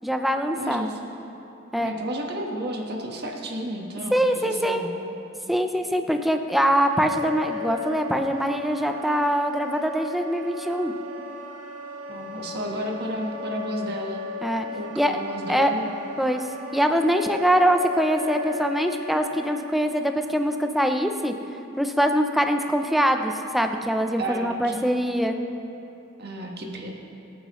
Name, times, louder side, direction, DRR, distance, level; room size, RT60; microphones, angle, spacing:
voice 1, 0.0-0.8 1.7-1.9 4.1-4.9 5.5-10.9 14.4-14.7 15.0-15.1 15.5-15.7 16.2-16.5 16.7-21.3 21.8-25.4, equal, ahead, 5 dB, 0.5 m, -23 dB
voice 2, 0.6-0.9 1.7-4.9 12.1-14.2 14.7-15.9 24.2-24.8 26.2-26.9, right 1 dB, 50° right, 1 dB, 1.4 m, -32 dB
Wind instrument woodwind instrument, 6.8-19.6, left 4 dB, 80° right, 1.5 m, -36 dB
22.5 x 8.9 x 3.1 m, 2.8 s
head